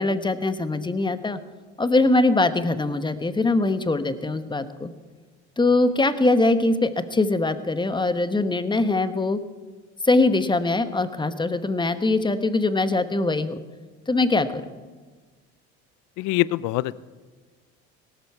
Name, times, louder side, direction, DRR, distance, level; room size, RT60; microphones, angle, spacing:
voice 1, 0.0-1.4 1.8-4.9 5.6-9.4 10.0-13.6 14.1-14.8, left 2 dB, 15° left, 11 dB, 1.1 m, -22 dB
voice 2, 16.2-17.0, left 17 dB, 60° left, 20 dB, 0.6 m, -24 dB
17.5 x 13.0 x 4.6 m, 1.4 s
hypercardioid pair, 75°, 34 cm